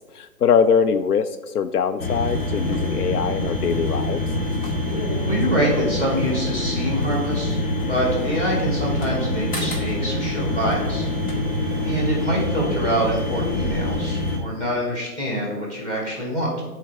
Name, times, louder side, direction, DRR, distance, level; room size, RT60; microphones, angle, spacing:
voice 1, 0.1-4.3, left 6 dB, 80° left, 11 dB, 0.6 m, -22 dB
sound 1, 2.0-14.4, left 1 dB, 55° left, 2.0 m, -25 dB
voice 2, 5.3-7.6 7.9-11.1 11.8-16.6, equal, 15° left, -4 dB, 2.2 m, -25 dB
10.0 x 4.6 x 3.5 m, 1.2 s
hypercardioid pair, 145°, 46 cm